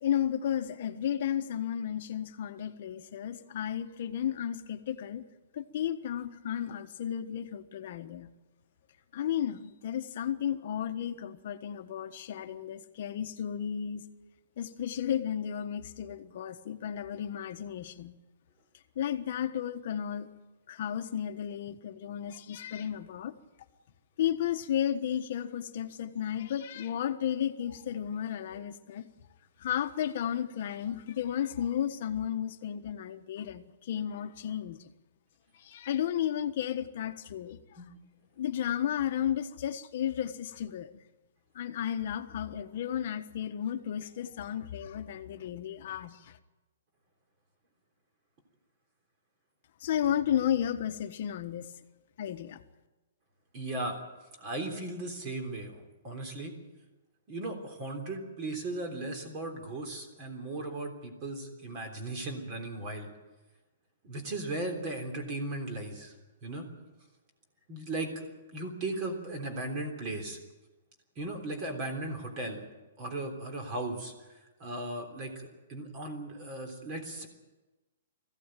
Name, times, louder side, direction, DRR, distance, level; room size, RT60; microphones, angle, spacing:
voice 1, 0.0-5.2 5.5-8.3 9.1-14.0 14.6-18.1 18.9-20.3 20.7-23.3 24.2-29.1 29.6-34.9 35.6-37.6 38.4-40.9 41.5-46.4 49.8-51.7 52.2-52.6, left 10 dB, 45° left, 1.3 m, -33 dB
voice 2, 53.5-54.0 54.4-56.5 57.3-63.1 64.0-66.1 66.4-66.7 67.7-68.3 68.5-70.4 71.1-72.6 73.0-77.3, right 2 dB, 25° right, 3.4 m, -37 dB
20.5 x 16.0 x 9.2 m
hypercardioid pair, 175°, 0 cm